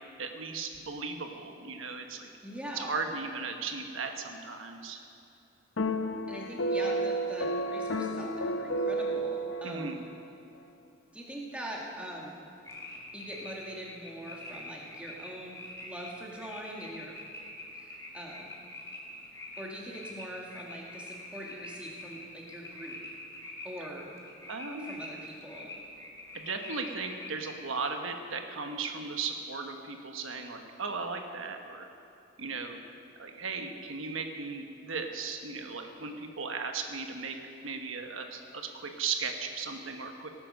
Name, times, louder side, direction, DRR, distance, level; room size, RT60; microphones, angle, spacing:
voice 1, 0.2-2.3 2.7-5.0 9.6-10.0 24.5-25.0 26.3-31.9 32.4-32.8 33.2-37.4 37.6-40.3, right 4 dB, 90° right, 5 dB, 1.2 m, -36 dB
voice 2, 2.4-3.0 6.3-10.0 11.1-12.4 13.1-17.2 17.7-18.5 19.6-23.0 23.6-24.1 24.8-25.7, right 1 dB, 5° right, -3 dB, 1.9 m, -43 dB
sound 1, 5.8-10.2, right 1 dB, 80° left, 0.8 m, -31 dB
sound 2, 12.6-27.5, left 1 dB, 15° left, 2.1 m, -45 dB
18.0 x 9.8 x 6.3 m, 2.7 s
head